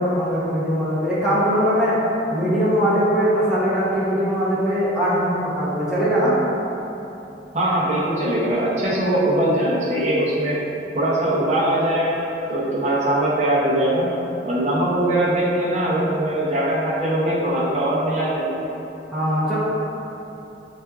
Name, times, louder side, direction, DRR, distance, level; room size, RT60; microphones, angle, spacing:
voice 1, 0.0-2.0 2.3-6.3 19.1-19.6, equal, 5° right, -11 dB, 0.7 m, -21 dB
voice 2, 7.5-10.6 10.9-14.1 14.4-18.6, right 1 dB, 40° right, -7 dB, 0.7 m, -21 dB
5.6 x 2.5 x 2.3 m, 3.0 s
head